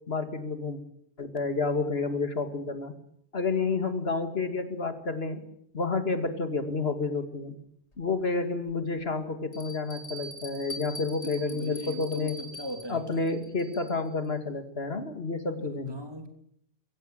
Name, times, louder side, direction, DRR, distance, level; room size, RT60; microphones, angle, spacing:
voice 1, 0.1-0.8 1.2-2.9 3.3-5.5 5.7-7.5 8.0-12.4 12.9-16.0, left 3 dB, 65° left, 8 dB, 2.5 m, -30 dB
Bell, 7.9-8.0 8.7-8.8 9.5-14.1, equal, 90° left, 3.1 m, -44 dB
voice 2, 11.2-13.4 15.6-16.3, equal, 20° right, 5 dB, 3.3 m, -40 dB
23.0 x 16.5 x 9.2 m, 0.70 s
omnidirectional pair, 1.1 m